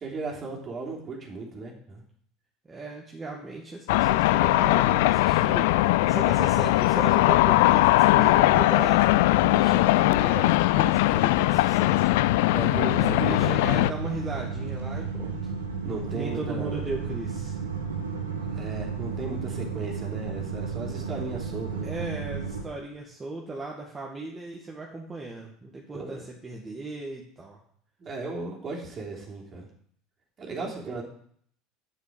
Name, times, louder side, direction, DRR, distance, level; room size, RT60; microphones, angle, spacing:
voice 1, 0.0-2.0 12.5-13.2 15.8-16.9 18.5-21.9 25.9-26.2 28.0-29.7 30.4-31.0, right 3 dB, 35° right, -1 dB, 3.1 m, -36 dB
voice 2, 2.7-12.1 13.0-15.5 16.1-17.6 21.8-27.6 30.8-31.0, right 2 dB, 20° right, -2 dB, 1.9 m, -37 dB
sound 1, 3.9-13.9, left 17 dB, 65° left, 0.3 m, -20 dB
sound 2, 12.6-22.6, right 5 dB, 85° right, 1.5 m, -33 dB
9.4 x 7.2 x 5.2 m, 0.63 s
hypercardioid pair, 75°, 0 cm